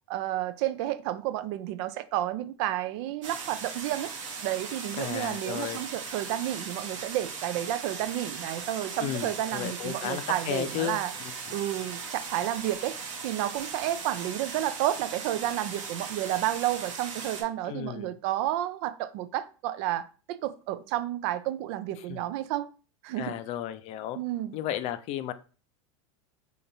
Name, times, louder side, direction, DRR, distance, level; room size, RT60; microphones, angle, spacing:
voice 1, 0.1-4.1 4.4-11.1 11.5-13.0 13.2-22.7 23.0-23.3 24.1-24.5, right 13 dB, 55° right, 0.4 m, -31 dB
sound 1, 3.2-17.4, right 5 dB, 80° right, 1.0 m, -38 dB
voice 2, 5.0-5.8 9.0-11.3 17.7-18.1 22.1-22.2 23.2-24.2 24.5-25.3, left 11 dB, 40° left, 0.4 m, -34 dB
3.7 x 2.9 x 2.7 m
hypercardioid pair, 100°, 16 cm